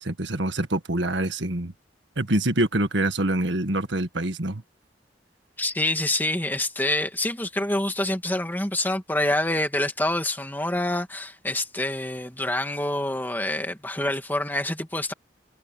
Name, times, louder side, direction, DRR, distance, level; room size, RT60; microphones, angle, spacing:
voice 1, 0.0-1.7 2.2-4.6, right 1 dB, 75° right, 1.8 m, -25 dB
voice 2, 5.6-15.1, left 1 dB, 10° left, 2.4 m, -26 dB
head